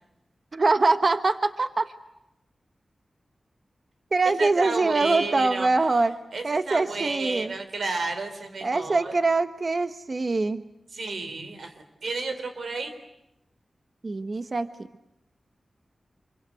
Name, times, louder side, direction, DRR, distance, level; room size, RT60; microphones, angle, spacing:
voice 1, 0.5-1.9 4.1-6.2 6.4-7.5 8.6-10.6 14.0-14.7, right 3 dB, 50° right, 10 dB, 1.2 m, -23 dB
voice 2, 4.4-5.7 6.3-9.1 10.9-12.9, right 3 dB, 80° right, 7 dB, 3.8 m, -32 dB
26.5 x 24.0 x 9.3 m, 0.91 s
wide cardioid pair, 75°, 0 cm